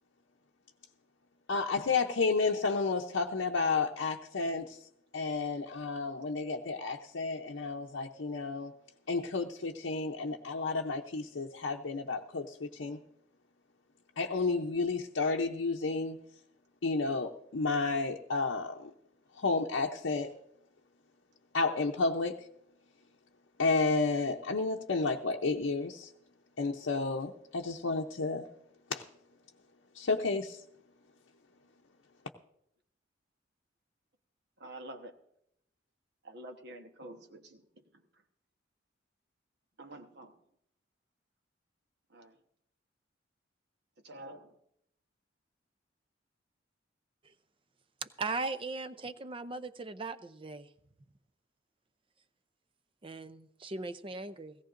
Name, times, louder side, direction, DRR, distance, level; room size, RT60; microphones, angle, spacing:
voice 1, 1.5-4.8 5.1-8.7 9.1-13.0 14.2-16.2 16.8-18.9 19.4-20.3 21.5-22.4 23.6-26.1 26.6-28.5 28.9-29.0 29.9-30.6, left 3 dB, 85° left, 1 dB, 0.7 m, -31 dB
voice 2, 34.6-35.1 36.2-37.6 39.8-40.4 42.1-42.4 44.0-44.6, right 1 dB, 60° right, 6 dB, 1.2 m, -48 dB
voice 3, 48.0-50.7 53.0-54.6, right 3 dB, 30° right, 12 dB, 0.5 m, -38 dB
17.5 x 16.5 x 2.6 m, 0.77 s
head